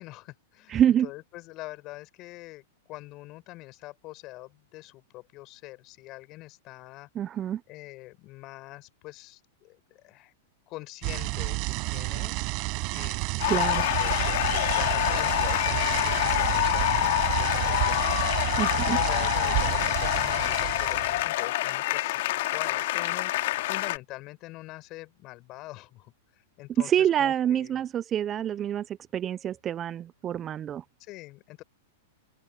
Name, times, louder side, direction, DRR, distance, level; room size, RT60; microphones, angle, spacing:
voice 1, 0.0-7.1 7.7-10.3 10.7-12.4 12.9-26.1 26.6-27.7 31.0-31.6, left 19 dB, 40° left, 7.3 m, -44 dB
voice 2, 0.7-1.1 7.2-7.6 13.5-13.8 18.6-19.0 26.8-28.9 29.1-30.8, right 10 dB, 30° right, 0.5 m, -26 dB
sound 1, 11.0-21.3, right 29 dB, 45° right, 6.1 m, -30 dB
sound 2, 13.4-24.0, left 17 dB, 60° left, 2.3 m, -26 dB
open air
hypercardioid pair, 115°, 0 cm